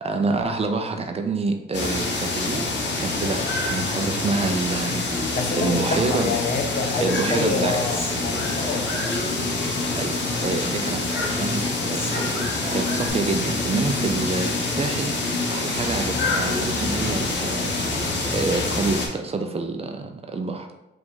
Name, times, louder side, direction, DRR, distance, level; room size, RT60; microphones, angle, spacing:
voice 1, 0.0-2.6 3.0-6.3 7.0-7.7 9.9-10.1 10.4-11.6 11.9-20.7, right 3 dB, 30° right, 5 dB, 0.5 m, -27 dB
sound 1, 1.7-19.1, left 2 dB, 65° left, 1.1 m, -26 dB
Human voice, 5.1-6.3 6.6-9.8 10.1-10.9 11.1-13.1, equal, 10° left, 1.2 m, -36 dB
voice 2, 5.3-9.1, left 4 dB, 45° left, 4 dB, 0.7 m, -27 dB
4.8 x 2.6 x 3.9 m, 0.91 s
cardioid pair, 90°, 20 cm